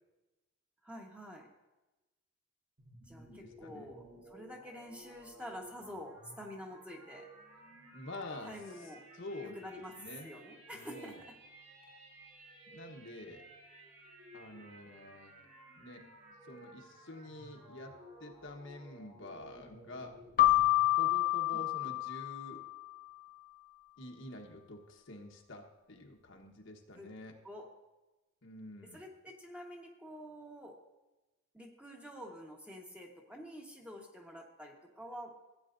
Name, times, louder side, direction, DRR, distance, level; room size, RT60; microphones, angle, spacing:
voice 1, 0.8-1.5 3.0-4.0 4.3-7.3 8.4-9.0 9.4-9.9 10.2-11.1 21.5-21.9 27.0-27.1 27.4-27.6 28.9-30.7 31.5-35.3, equal, 5° right, 0 dB, 1.2 m, -48 dB
sound 1, 2.8-20.9, right 1 dB, 80° right, 4.1 m, -55 dB
voice 2, 3.3-3.9 7.9-8.5 9.1-10.3 10.7-11.2 12.7-13.5 14.3-15.4 15.8-16.0 16.5-20.1 20.9-22.6 24.0-27.3 28.4-29.0, left 1 dB, 60° left, 2 dB, 1.1 m, -48 dB
Keyboard (musical), 20.4-22.9, left 16 dB, 40° left, 0.4 m, -28 dB
16.0 x 9.0 x 2.6 m, 1.1 s
head